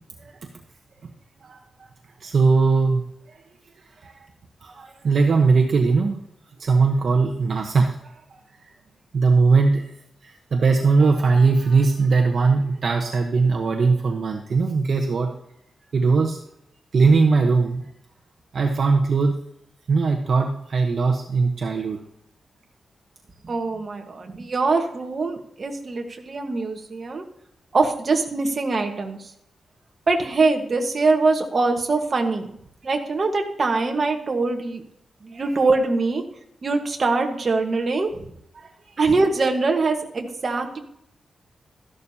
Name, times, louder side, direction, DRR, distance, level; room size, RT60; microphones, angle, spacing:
voice 1, 2.2-3.0 3.3-3.4 4.0-4.3 4.6-6.2 6.6-8.1 9.1-9.9 10.2-15.3 15.9-16.4 16.9-17.9 18.5-19.3 19.9-22.0 35.3-35.5 38.5-38.9, right 4 dB, 55° right, 2 dB, 1.0 m, -20 dB
voice 2, 23.4-27.2 27.7-29.3 30.1-32.5 32.8-34.8 35.2-36.2 36.6-38.2 39.0-40.8, right 3 dB, 35° right, 3 dB, 1.4 m, -23 dB
13.5 x 11.5 x 2.9 m, 0.74 s
wide cardioid pair, 155°, 0 cm